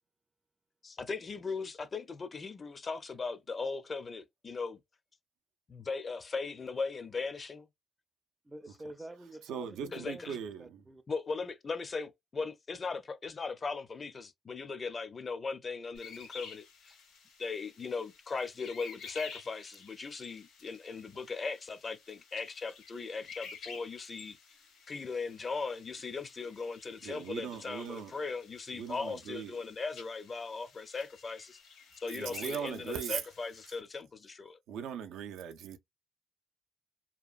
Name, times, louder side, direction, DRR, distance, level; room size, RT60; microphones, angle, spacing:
voice 1, 0.8-4.8 5.7-7.7 9.9-10.4 11.1-17.0 17.4-24.4 24.9-31.6 32.0-34.6, left 4 dB, 35° left, 0.5 m, -38 dB
voice 2, 8.4-11.0, right 1 dB, 15° right, 0.4 m, -48 dB
voice 3, 9.5-10.8 27.0-28.1 28.7-29.5 32.1-33.2 34.7-35.8, right 8 dB, 85° right, 0.4 m, -39 dB
sound 1, 15.9-33.8, left 5 dB, 80° left, 1.5 m, -52 dB
2.9 x 2.2 x 2.4 m
cardioid pair, 90°, 0 cm